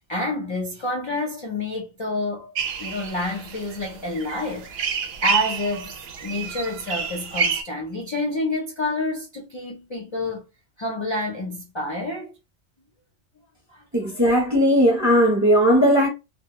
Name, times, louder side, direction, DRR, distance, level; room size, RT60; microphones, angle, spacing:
voice 1, 0.0-2.5 2.8-10.4 10.8-12.3 13.7-14.2, left 2 dB, 40° left, 0.4 m, -29 dB
sound 1, 2.5-7.6, right 6 dB, 65° right, 0.7 m, -28 dB
voice 2, 13.9-16.1, equal, 20° right, 0.4 m, -17 dB
2.2 x 2.1 x 2.9 m
omnidirectional pair, 1.3 m